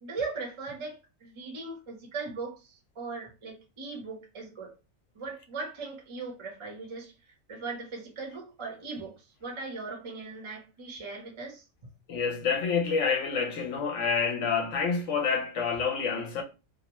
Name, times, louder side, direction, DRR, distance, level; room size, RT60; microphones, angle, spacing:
voice 1, 0.0-4.7 5.1-7.1 7.5-11.6, right 4 dB, 30° right, 0.6 m, -39 dB
voice 2, 12.1-16.4, left 5 dB, 65° left, 0.9 m, -28 dB
2.7 x 2.0 x 2.9 m
omnidirectional pair, 1.5 m